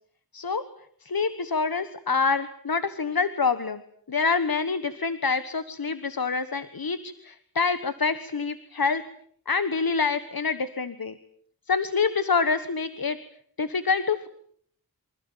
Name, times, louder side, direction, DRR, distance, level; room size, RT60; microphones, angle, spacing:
voice 1, 1.0-3.8 4.1-9.0 9.5-11.1 11.7-13.2 13.6-14.3, left 5 dB, 80° left, 12 dB, 1.4 m, -26 dB
28.0 x 25.0 x 7.4 m, 0.63 s
wide cardioid pair, 65°, 35 cm